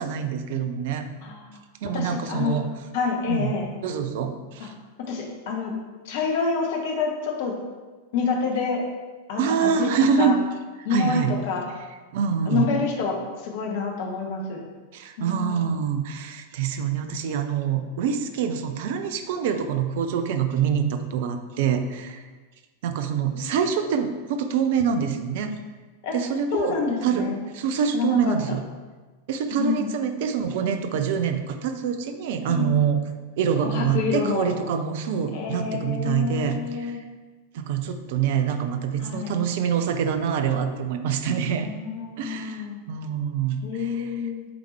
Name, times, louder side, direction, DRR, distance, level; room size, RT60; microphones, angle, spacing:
voice 1, 0.0-1.1 1.8-2.7 3.3-3.6 3.8-4.7 9.4-10.4 10.9-11.4 12.1-12.7 14.9-22.2 22.8-25.5 26.1-26.8 27.0-27.2 27.5-28.6 29.3-33.0 33.4-37.0 37.5-41.7 42.2-44.2, right 7 dB, 50° right, 7 dB, 0.5 m, -25 dB
voice 2, 1.9-2.6 2.9-3.7 4.6-4.7 5.1-5.7 6.0-7.5 8.1-8.8 9.3-9.9 10.2-10.4 10.8-11.7 12.5-14.6 15.2-15.6 23.3-23.6 26.0-26.1 26.5-27.4 27.9-28.3 29.5-29.9 32.5-32.8 33.6-34.5 35.3-37.0 39.0-39.4 41.5-42.8 43.6-44.5, left 5 dB, 50° left, 1 dB, 1.0 m, -28 dB
8.5 x 3.5 x 3.2 m, 1.3 s
figure-of-eight pair, 90°, 0 cm